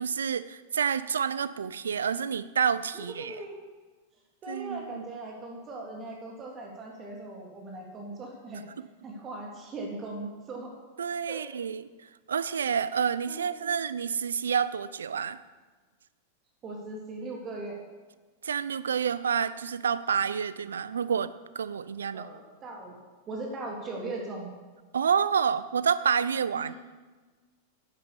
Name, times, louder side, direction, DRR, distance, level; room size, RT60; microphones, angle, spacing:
voice 1, 0.0-3.4 4.5-5.0 11.0-11.8 12.3-15.4 18.4-22.3 24.9-26.7, right 7 dB, 75° right, 16 dB, 0.6 m, -28 dB
voice 2, 2.9-3.5 4.4-8.7 9.0-10.7 11.3-11.4 13.3-13.8 16.6-17.8 22.1-23.0 23.3-24.5 26.5-26.8, right 2 dB, 30° right, -1 dB, 3.4 m, -39 dB
11.5 x 9.6 x 7.0 m, 1.3 s
figure-of-eight pair, 95°, 0 cm